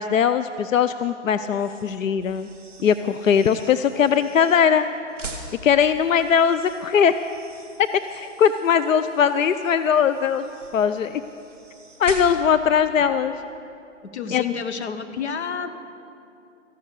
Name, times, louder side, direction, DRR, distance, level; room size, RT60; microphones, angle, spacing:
voice 1, 0.0-2.5 2.8-4.9 5.6-7.1 8.2-11.2 12.0-13.4 14.3-14.4, left 7 dB, 85° left, 12 dB, 0.6 m, -20 dB
sound 1, 1.5-12.7, right 3 dB, ahead, 0.5 m, -43 dB
voice 2, 14.0-15.7, left 6 dB, 60° left, 9 dB, 1.1 m, -29 dB
14.0 x 11.5 x 6.6 m, 2.7 s
hypercardioid pair, 160°, 38 cm